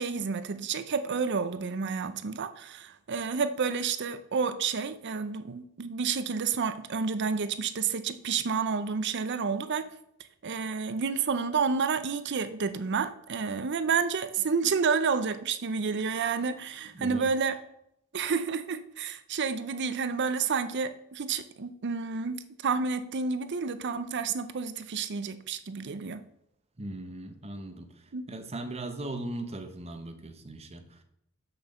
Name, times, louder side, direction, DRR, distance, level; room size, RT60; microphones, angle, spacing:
voice 1, 0.0-9.8 10.4-17.5 18.1-26.2 28.1-28.2, right 5 dB, 55° right, 12 dB, 0.6 m, -30 dB
voice 2, 16.9-17.3 26.8-27.9 28.3-31.0, right 1 dB, 30° right, 7 dB, 1.0 m, -38 dB
6.7 x 6.2 x 6.7 m, 0.77 s
head